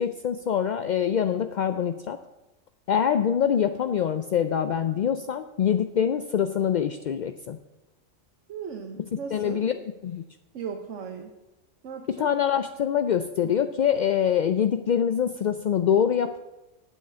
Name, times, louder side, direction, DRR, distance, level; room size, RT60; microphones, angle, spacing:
voice 1, 0.0-2.2 2.9-7.6 9.3-9.7 10.0-10.2 12.2-16.4, left 8 dB, 65° left, 9 dB, 0.4 m, -24 dB
voice 2, 8.5-9.6 10.5-11.3 11.8-12.3, right 6 dB, 80° right, 3 dB, 1.2 m, -37 dB
8.9 x 6.5 x 8.4 m, 1.0 s
omnidirectional pair, 1.3 m